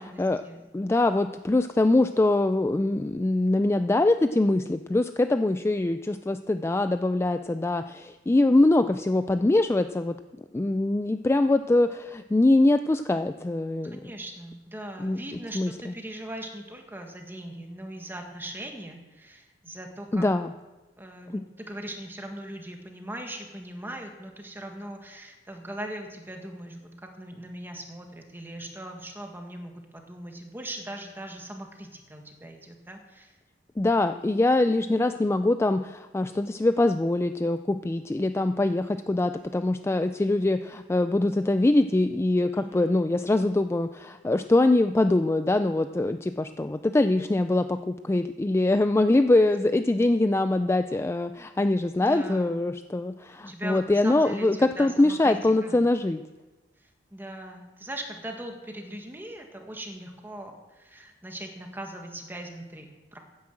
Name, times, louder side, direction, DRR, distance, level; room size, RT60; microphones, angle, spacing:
voice 1, 0.0-0.6 13.9-20.2 21.0-33.4 42.5-42.9 52.0-52.7 53.4-55.8 56.8-63.2, right 1 dB, 10° right, 3 dB, 1.6 m, -40 dB
voice 2, 0.7-10.2 10.5-14.0 15.0-15.2 15.5-15.9 20.1-20.5 21.3-21.4 33.8-56.2, left 2 dB, 15° left, 9 dB, 0.3 m, -23 dB
9.8 x 9.5 x 7.7 m, 1.2 s
head